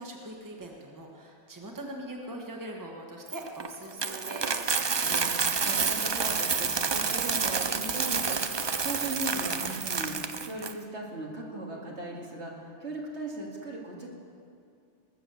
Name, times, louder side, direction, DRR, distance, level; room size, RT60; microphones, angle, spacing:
voice 1, 0.0-4.6, right 1 dB, 15° right, 0 dB, 1.4 m, -41 dB
Coin (dropping), 3.3-10.7, right 5 dB, 45° right, 0.3 m, -29 dB
voice 2, 4.7-8.4 8.8-14.2, right 2 dB, 75° right, -2 dB, 2.3 m, -38 dB
20.0 x 6.9 x 7.0 m, 2.4 s
omnidirectional pair, 1.2 m